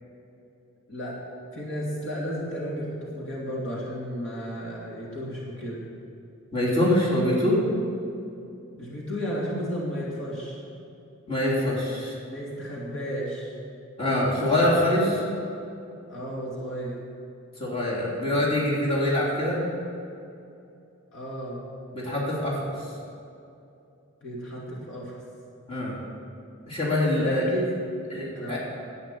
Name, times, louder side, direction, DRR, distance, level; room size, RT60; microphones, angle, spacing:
voice 1, 1.5-5.8 8.7-10.6 12.3-13.5 16.1-17.0 21.1-21.6 24.2-25.2 27.2-27.7 28.4-28.6, equal, 60° left, -4 dB, 2.5 m, -33 dB
voice 2, 6.5-7.6 11.3-12.1 14.0-15.2 17.6-19.6 21.9-22.6 25.7-26.0 26.6-27.4 28.1-28.6, left 1 dB, 25° left, -6 dB, 3.2 m, -24 dB
11.0 x 8.8 x 8.4 m, 2.7 s
head